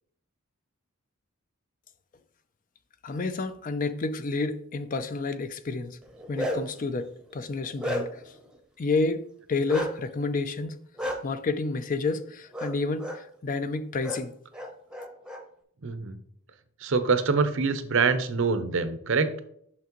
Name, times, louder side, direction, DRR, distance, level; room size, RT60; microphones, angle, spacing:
voice 1, 3.0-6.0 6.3-8.1 8.8-9.2 9.5-10.8 11.2-14.3, left 3 dB, 35° left, 0.4 m, -29 dB
Bark, 6.0-6.8 7.3-8.3 9.7-9.9 11.0-11.2 12.5-12.7 13.0-13.2 14.0-14.2 14.5-15.4, equal, 5° right, 0.8 m, -32 dB
voice 2, 15.8-16.2 16.8-19.3, right 4 dB, 60° right, 0.6 m, -25 dB
5.9 x 5.8 x 3.0 m
head